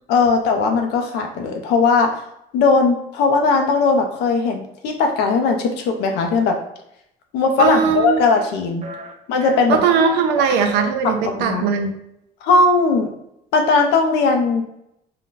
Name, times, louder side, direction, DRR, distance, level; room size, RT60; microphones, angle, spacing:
voice 1, 0.1-2.2 2.5-6.6 7.3-8.8 9.3-9.8 11.2-11.7 12.4-13.1 13.5-14.6, left 4 dB, 90° left, 3 dB, 0.5 m, -18 dB
sound 1, 7.6-7.8 8.2-8.5 8.8-9.1 9.4-10.2 10.5-10.9, right 2 dB, 40° right, 0.6 m, -34 dB
voice 2, 7.6-8.2 9.7-11.9, right 6 dB, 85° right, 5 dB, 0.5 m, -19 dB
2.5 x 2.2 x 3.7 m, 0.78 s
cardioid pair, 110°, 17 cm